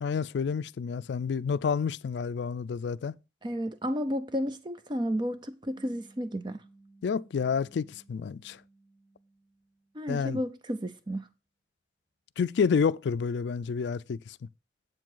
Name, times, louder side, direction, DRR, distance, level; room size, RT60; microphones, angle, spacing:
voice 1, 0.0-3.2 7.0-8.6 10.1-10.4 12.4-14.4, left 6 dB, 75° left, 0.3 m, -29 dB
voice 2, 3.4-6.6 9.9-11.3, equal, 25° right, 0.5 m, -32 dB
sound 1, 5.7-10.4, right 2 dB, 60° right, 6.2 m, -59 dB
7.7 x 7.5 x 3.8 m
head